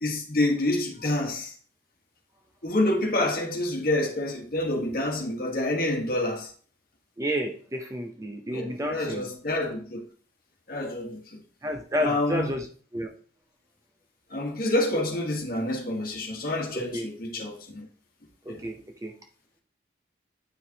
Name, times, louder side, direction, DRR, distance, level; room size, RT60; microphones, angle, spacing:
voice 1, 0.0-1.5 2.6-6.5 8.5-10.1 10.7-11.4 12.0-12.5 14.3-17.9 18.5-18.6, left 1 dB, 50° left, 1.3 m, -28 dB
voice 2, 7.2-9.3 11.6-12.7 12.9-13.1 16.7-17.1 18.5-19.1, equal, 15° right, 0.5 m, -31 dB
9.1 x 4.7 x 2.8 m
head